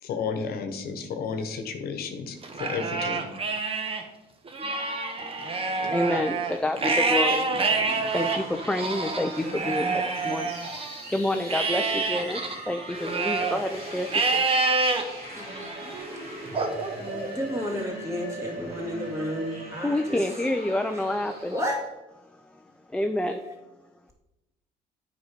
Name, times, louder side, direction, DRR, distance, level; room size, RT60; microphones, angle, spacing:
voice 1, 0.0-3.3, left 5 dB, 65° left, 7 dB, 1.1 m, -32 dB
Livestock farm animals working animals, 2.4-4.0 4.5-11.0 11.5-13.6 14.1-15.0 15.6-16.0 16.5-17.6, right 3 dB, 35° right, 1.1 m, -27 dB
voice 2, 5.2-17.6 17.9-18.0 18.8-21.5 22.3-22.6 22.9-23.4, left 1 dB, 5° left, 6 dB, 0.5 m, -30 dB
sound 1, 7.6-21.8, right 2 dB, 60° right, 2.7 m, -40 dB
voice 3, 15.3-15.8 17.0-20.2 20.9-21.0 21.5-21.8 23.5-23.6, left 1 dB, 15° right, -1 dB, 2.4 m, -32 dB
8.1 x 5.2 x 5.1 m, 1.0 s
cardioid pair, 110°, 17 cm